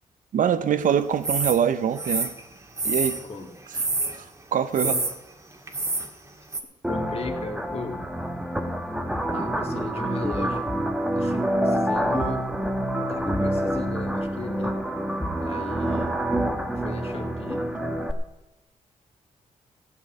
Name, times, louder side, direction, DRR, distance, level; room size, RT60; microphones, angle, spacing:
voice 1, 0.3-2.3 2.8-3.2 4.1-4.9, right 8 dB, 70° right, 12 dB, 0.8 m, -24 dB
sound 1, 1.2-1.6 2.0-3.2 3.7-4.2 4.7-5.1 5.7-6.1 6.5-6.6, right 3 dB, 20° right, 1.8 m, -27 dB
sound 2, 6.8-18.1, right 1 dB, 5° right, 1.3 m, -27 dB
voice 2, 6.9-8.1 9.3-10.7 11.1-12.5 13.0-14.8 15.4-16.2 16.8-17.7, left 4 dB, 45° left, 3 dB, 2.2 m, -36 dB
15.5 x 6.3 x 8.8 m, 0.95 s
cardioid pair, 110°, 14 cm